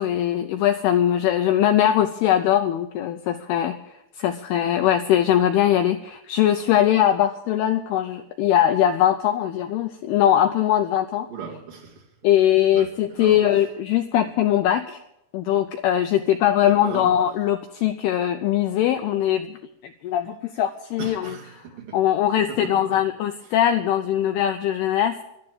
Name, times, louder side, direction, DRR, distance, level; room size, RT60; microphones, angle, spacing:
voice 1, 0.0-3.8 4.2-11.3 12.2-15.0 15.3-19.6 20.0-21.3 21.9-25.2, left 11 dB, 85° left, 8 dB, 2.3 m, -21 dB
voice 2, 11.3-12.1 12.7-13.4 16.6-17.1 21.0-22.0 22.3-23.0, right 6 dB, 55° right, -1 dB, 3.1 m, -38 dB
12.0 x 11.5 x 8.7 m, 0.85 s
omnidirectional pair, 5.2 m